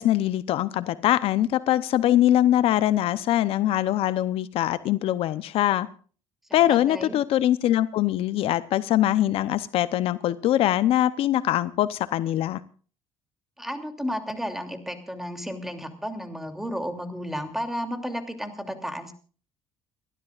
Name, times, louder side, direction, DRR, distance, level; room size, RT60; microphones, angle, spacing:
voice 1, 0.0-5.9 6.5-12.6, left 13 dB, 70° left, 15 dB, 0.7 m, -23 dB
voice 2, 6.5-7.2 13.6-19.1, equal, 5° right, 6 dB, 2.9 m, -33 dB
30.0 x 12.5 x 2.5 m, 0.40 s
cardioid pair, 105°, 10 cm